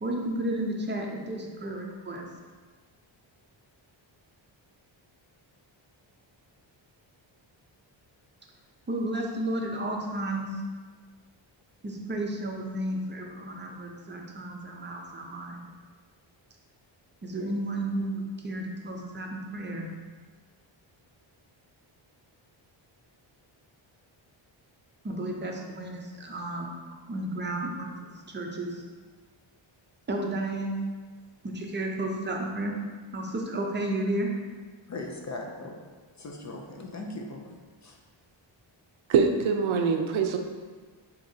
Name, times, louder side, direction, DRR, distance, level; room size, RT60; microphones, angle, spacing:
voice 1, 0.0-2.3 8.9-10.6 11.8-15.7 17.2-19.9 25.0-26.7 27.0-28.8 30.1-30.8 31.4-32.8 33.1-34.3, right 1 dB, 25° right, 0 dB, 0.6 m, -32 dB
voice 2, 34.9-35.8 36.2-37.4 37.8-38.0, left 2 dB, 40° left, 1 dB, 0.5 m, -38 dB
voice 3, 39.1-40.4, right 5 dB, 75° right, 4 dB, 0.6 m, -24 dB
6.8 x 2.9 x 2.7 m, 1.4 s
wide cardioid pair, 145°, 48 cm